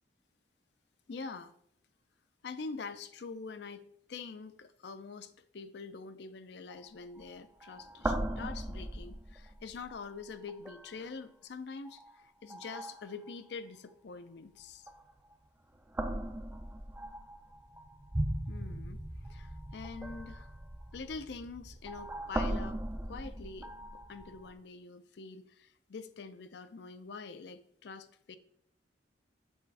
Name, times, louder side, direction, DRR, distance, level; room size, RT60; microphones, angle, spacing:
voice 1, 1.1-1.5 2.4-3.8 4.1-14.9 18.5-20.5 20.9-23.7 24.1-28.4, left 4 dB, 60° left, 11 dB, 0.4 m, -45 dB
sound 1, 6.7-6.9 7.2-7.4 7.6-10.0 10.5-11.0 11.8-12.1 12.5-13.3 14.9-15.3 15.9-24.5, right 1 dB, 10° right, 0.4 m, -39 dB
7.1 x 3.1 x 4.6 m, 0.66 s
head